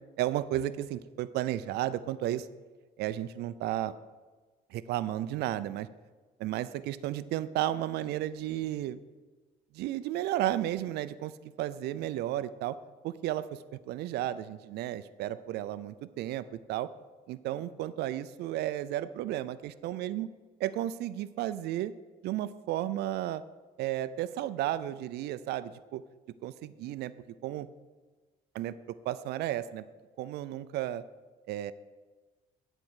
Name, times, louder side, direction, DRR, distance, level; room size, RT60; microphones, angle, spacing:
voice 1, 0.2-2.5 3.0-3.9 4.7-5.9 6.4-9.0 9.7-12.8 13.0-13.6 13.9-16.9 17.3-20.3 20.6-21.9 22.2-23.4 23.8-26.0 26.4-27.1 27.4-27.7 28.5-28.7 29.1-29.8 30.2-31.0 31.5-31.7, right 13 dB, 80° right, 15 dB, 0.5 m, -33 dB
10.5 x 4.5 x 8.0 m, 1.3 s
cardioid pair, 110°, 17 cm